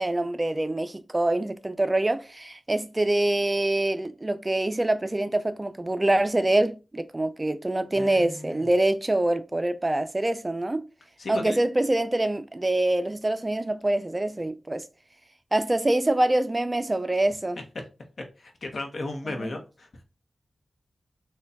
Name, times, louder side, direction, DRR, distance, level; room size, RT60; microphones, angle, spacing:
voice 1, 0.0-10.9 11.3-14.9 15.5-17.6 19.4-19.5, right 1 dB, 25° right, 0.4 m, -25 dB
voice 2, 7.9-8.7 11.2-11.6 17.7-17.8 18.2-20.0, left 2 dB, 65° left, 0.8 m, -35 dB
4.1 x 2.3 x 2.7 m
cardioid pair, 55°, 0 cm